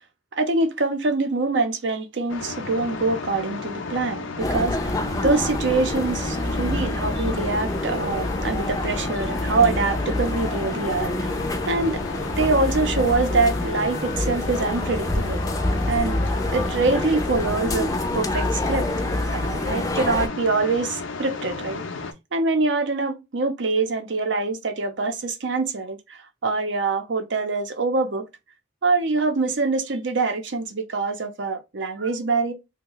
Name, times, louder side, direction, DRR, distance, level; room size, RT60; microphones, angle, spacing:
voice 1, 0.4-5.0 5.2-11.3 11.7-12.0 12.4-15.5 15.9-16.2 16.5-17.9 18.1-18.9 19.3-21.8 22.3-28.2 28.8-32.5, right 3 dB, 65° right, 0.7 m, -24 dB
sound 1, 2.3-22.1, left 3 dB, 80° left, 0.6 m, -34 dB
sound 2, 4.4-20.3, left 1 dB, 20° left, 0.5 m, -27 dB
2.9 x 2.2 x 3.8 m
head